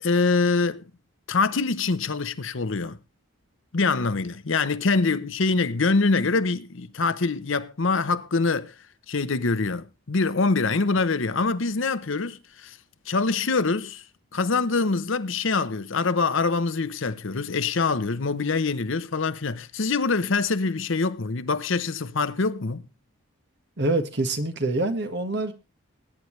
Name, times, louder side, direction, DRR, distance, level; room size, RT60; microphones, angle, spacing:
voice 1, 0.0-0.8 1.3-3.0 3.7-8.7 9.1-12.8 13.1-14.0 14.3-22.8, left 4 dB, 60° left, 0.8 m, -24 dB
voice 2, 23.8-25.5, right 2 dB, 50° right, 1.5 m, -25 dB
21.0 x 9.5 x 3.2 m
head